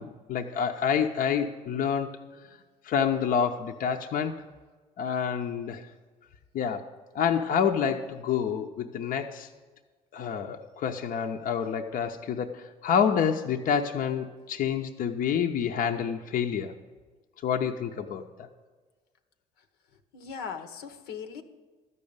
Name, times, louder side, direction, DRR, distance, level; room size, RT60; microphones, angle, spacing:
voice 1, 0.0-2.2 2.8-4.4 5.0-5.8 6.5-6.9 7.1-9.5 10.1-16.7 17.4-18.5, left 7 dB, 60° left, 4 dB, 0.7 m, -28 dB
voice 2, 20.1-21.4, left 6 dB, 85° left, 7 dB, 0.9 m, -39 dB
13.0 x 5.4 x 8.7 m, 1.4 s
supercardioid pair, 70°, 16 cm